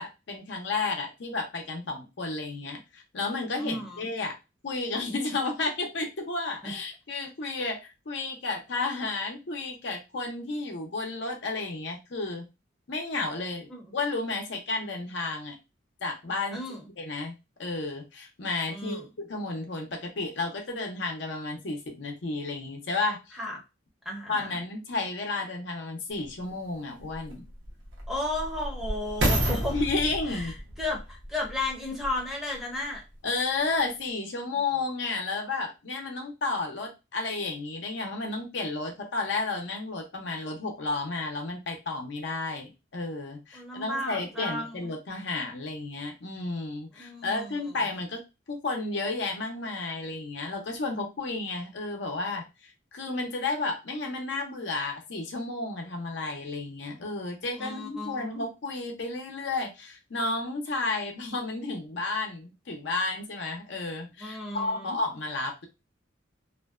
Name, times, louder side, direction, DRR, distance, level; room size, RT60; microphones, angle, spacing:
voice 1, 0.0-4.4 4.6-12.5 12.9-15.6 16.0-16.6 17.0-19.0 19.3-23.3 24.3-27.4 29.7-30.5 33.2-48.2 48.5-65.7, left 3 dB, 60° left, 2 dB, 0.6 m, -32 dB
voice 2, 3.6-4.1 6.6-6.7 13.7-13.8 16.5-16.8 18.7-19.1 23.3-23.6 24.0-24.6 28.1-29.8 30.3-33.0 43.5-44.9 47.0-47.8 57.6-58.5 64.2-65.0, left 1 dB, ahead, -1 dB, 0.6 m, -34 dB
sound 1, 26.2-26.3 27.0-32.3 32.9-33.0, right 1 dB, 75° right, 0.8 m, -31 dB
2.5 x 2.1 x 2.3 m, 0.26 s
head